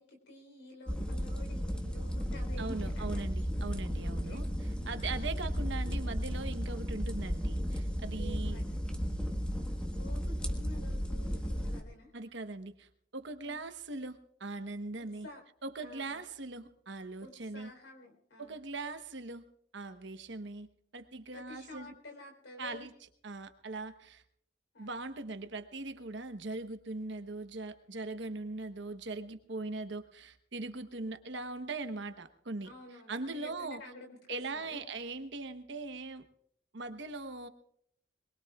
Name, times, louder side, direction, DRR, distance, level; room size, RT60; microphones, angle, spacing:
voice 1, 0.0-3.2 4.0-4.4 5.0-5.3 8.2-8.9 10.0-12.1 13.4-13.6 15.0-15.4 15.8-16.2 17.2-18.6 21.3-22.9 24.7-25.0 32.6-34.8, left 1 dB, 75° left, 5 dB, 3.9 m, -51 dB
sound 1, 0.9-11.8, equal, 5° left, 1.5 m, -34 dB
voice 2, 2.6-4.5 4.9-8.6 12.1-15.3 15.6-17.7 18.4-19.4 19.7-20.7 20.9-21.9 22.6-22.9 23.2-24.2 24.8-32.7 33.1-33.8 34.3-36.2 36.7-37.5, right 3 dB, 65° right, 9 dB, 1.1 m, -40 dB
22.5 x 21.5 x 2.4 m, 0.70 s
head